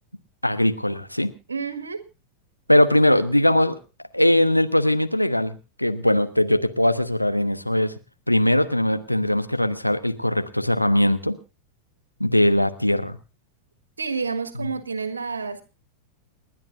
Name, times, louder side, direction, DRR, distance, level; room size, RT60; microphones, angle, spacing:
voice 1, 0.4-1.3 2.7-3.8 4.1-7.9 8.3-11.4 12.2-13.2 14.6-14.7, left 1 dB, 90° left, 9 dB, 1.2 m, -20 dB
voice 2, 1.5-2.0 14.0-15.6, right 5 dB, 75° right, 9 dB, 1.7 m, -29 dB
29.5 x 10.5 x 2.6 m, 0.31 s
figure-of-eight pair, 90°, 0 cm